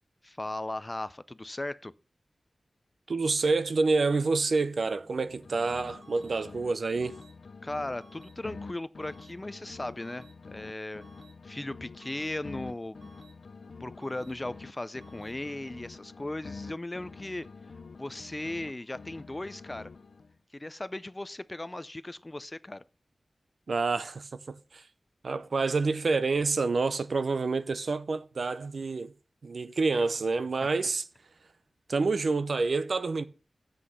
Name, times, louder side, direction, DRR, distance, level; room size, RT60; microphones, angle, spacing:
voice 1, 0.2-1.9 7.6-11.0 11.4-13.1 13.8-17.5 18.0-19.9 20.5-22.8, left 2 dB, 20° left, 0.4 m, -37 dB
voice 2, 3.1-7.2 23.7-24.9 25.2-29.1 29.4-31.0 31.9-33.2, right 3 dB, 65° right, 0.7 m, -28 dB
sound 1, 5.1-6.7 7.0-10.7 11.0-14.7 15.0-18.7 19.0-20.4, left 4 dB, 70° left, 0.8 m, -47 dB
sound 2, 6.0-6.3 7.0-7.3 8.0-8.3 9.0-9.3 10.0-10.3 11.0-11.3 12.0-12.3 13.0-13.3 14.0-14.3 15.0-15.3, right 3 dB, 85° right, 1.4 m, -58 dB
7.6 x 6.1 x 6.7 m
wide cardioid pair, 115°, 0 cm